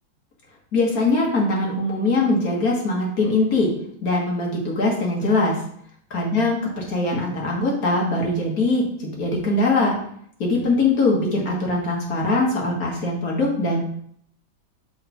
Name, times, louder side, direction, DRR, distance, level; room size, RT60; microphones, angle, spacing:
voice 1, 0.7-3.7 4.0-5.6 6.1-9.9 10.4-13.8, left 2 dB, 50° left, -2 dB, 1.9 m, -22 dB
6.2 x 4.7 x 4.2 m, 0.64 s
omnidirectional pair, 2.1 m